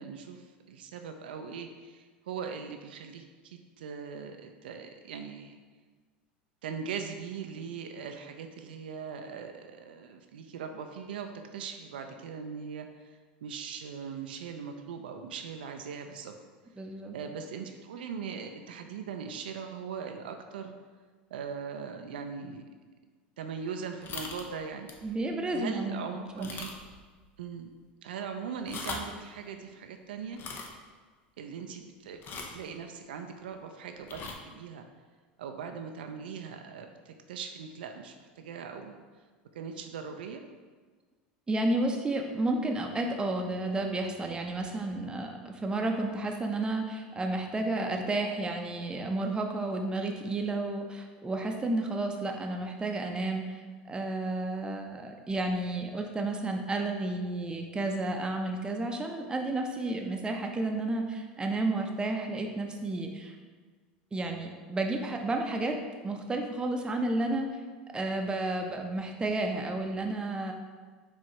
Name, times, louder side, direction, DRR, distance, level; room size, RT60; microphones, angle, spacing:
voice 1, 0.0-5.6 6.6-16.3 17.1-20.7 21.3-22.6 23.4-25.1 25.5-26.7 27.4-27.7 28.0-30.4 31.4-34.8 35.4-39.0 39.5-40.4, right 6 dB, 80° right, 5 dB, 0.3 m, -40 dB
voice 2, 16.8-17.2 25.0-26.5 41.5-63.3 64.1-65.8 66.0-67.5 67.9-70.5, right 2 dB, 15° right, 3 dB, 0.6 m, -31 dB
sound 1, 24.0-24.5 24.9-25.1 25.5-25.6 26.4-27.0 27.3-27.4 28.5-29.2 30.3-30.7 32.2-32.6 34.0-34.3, left 4 dB, 40° left, 0.6 m, -40 dB
4.5 x 3.1 x 2.9 m, 1.5 s
hypercardioid pair, 90°, 5 cm